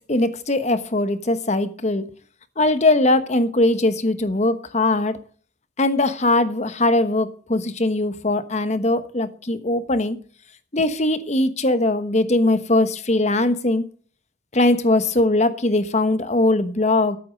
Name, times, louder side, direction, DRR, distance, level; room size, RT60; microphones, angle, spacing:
voice 1, 0.1-2.1 2.6-5.2 5.8-10.2 10.7-13.8 14.5-17.2, left 2 dB, 35° left, 1.1 m, -20 dB
13.0 x 8.4 x 6.4 m
head